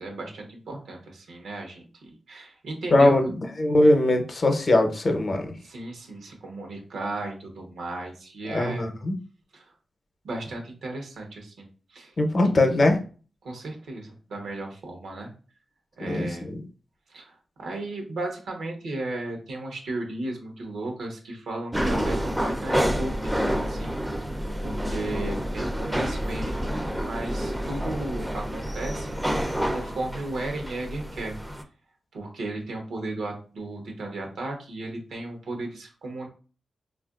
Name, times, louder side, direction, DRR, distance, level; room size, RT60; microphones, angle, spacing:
voice 1, 0.0-3.1 5.6-8.9 9.5-9.7 10.2-12.1 12.4-12.5 13.4-15.3 16.0-16.5 17.1-24.3 24.6-31.4 32.1-36.3, right 2 dB, 85° right, 2 dB, 0.8 m, -35 dB
voice 2, 2.9-3.3 3.6-5.4 8.5-9.2 12.2-13.0 16.1-16.6, left 1 dB, 50° left, 4 dB, 0.7 m, -21 dB
sound 1, 21.7-31.6, equal, 10° right, 0.5 m, -28 dB
3.6 x 2.4 x 2.4 m, 0.38 s
cardioid pair, 55°, 0 cm